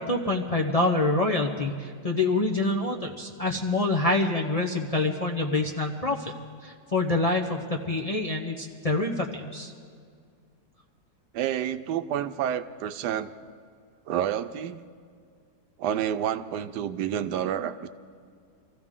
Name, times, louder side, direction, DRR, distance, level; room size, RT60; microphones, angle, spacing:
voice 1, 0.0-6.3 6.6-9.7, left 2 dB, 30° left, 1 dB, 0.7 m, -26 dB
voice 2, 11.3-13.3 14.1-14.8 15.8-17.9, right 10 dB, 80° right, 10 dB, 1.2 m, -29 dB
25.5 x 15.0 x 3.7 m, 2.2 s
omnidirectional pair, 1.8 m